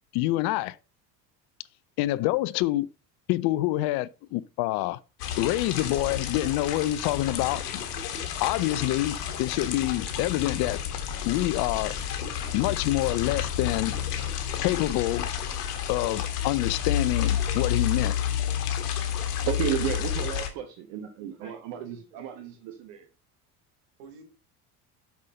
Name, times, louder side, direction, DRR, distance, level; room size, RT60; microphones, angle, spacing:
voice 1, 0.1-0.8 2.0-2.9 3.3-5.0 5.4-7.6 8.4-10.8 11.2-11.9 12.5-14.0 14.6-15.3 15.9-18.2, left 16 dB, 55° left, 0.5 m, -26 dB
sound 1, 5.2-20.5, left 9 dB, 75° left, 1.5 m, -30 dB
voice 2, 19.1-23.1, right 10 dB, 60° right, 1.2 m, -33 dB
voice 3, 21.2-22.6 24.0-24.2, right 3 dB, 75° right, 3.1 m, -51 dB
6.1 x 5.7 x 5.3 m
hypercardioid pair, 70°, 46 cm